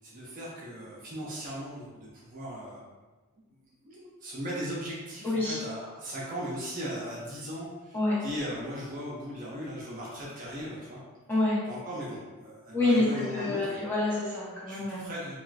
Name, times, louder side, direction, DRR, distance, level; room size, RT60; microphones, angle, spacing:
voice 1, 0.0-2.8 3.3-11.0 11.6-13.8 14.6-15.4, equal, 35° right, -6 dB, 0.6 m, -38 dB
voice 2, 5.2-5.6 7.9-8.2 11.3-11.6 12.7-13.0 13.3-15.1, left 2 dB, 10° left, -10 dB, 1.0 m, -27 dB
3.6 x 2.4 x 2.4 m, 1.3 s
head